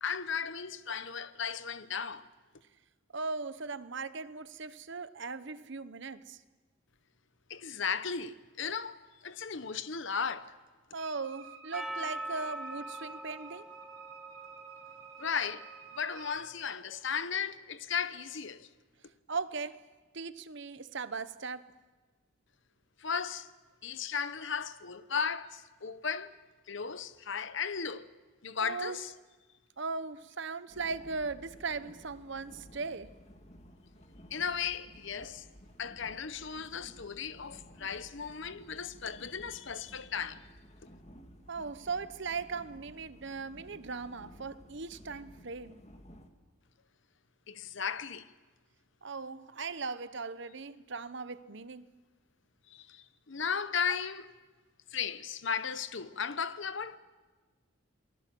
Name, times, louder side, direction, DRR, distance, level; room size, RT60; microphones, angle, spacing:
voice 1, 0.0-2.3 7.5-9.0 9.2-10.5 15.2-15.7 16.0-18.7 23.0-23.5 23.8-26.3 26.7-28.1 28.4-29.1 34.3-35.4 35.8-40.4 47.5-48.3 52.7-54.3 54.9-57.0, left 6 dB, 60° left, 0.9 m, -35 dB
voice 2, 3.1-6.4 10.9-13.7 19.3-19.8 20.1-21.7 28.6-29.0 29.8-33.1 41.5-45.8 49.0-51.9, right 4 dB, 55° right, 0.9 m, -38 dB
Wind instrument woodwind instrument, 11.0-16.5, right 8 dB, 80° right, 3.7 m, -50 dB
Percussion, 11.7-16.2, right 1 dB, ahead, 1.0 m, -43 dB
sound 1, 30.7-46.3, equal, 30° left, 2.1 m, -55 dB
28.0 x 20.0 x 7.7 m
head